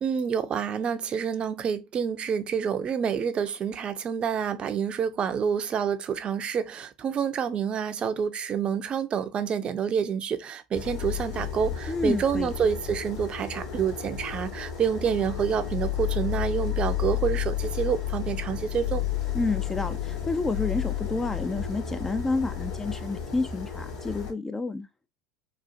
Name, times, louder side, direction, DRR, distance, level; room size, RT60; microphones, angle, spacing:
voice 1, 0.0-19.0, right 7 dB, 35° right, 0.5 m, -28 dB
sound 1, 10.7-24.3, left 10 dB, 60° left, 1.8 m, -32 dB
voice 2, 11.9-12.5 19.3-24.9, left 3 dB, 15° left, 0.4 m, -29 dB
4.0 x 2.4 x 2.4 m
hypercardioid pair, 85°, 3 cm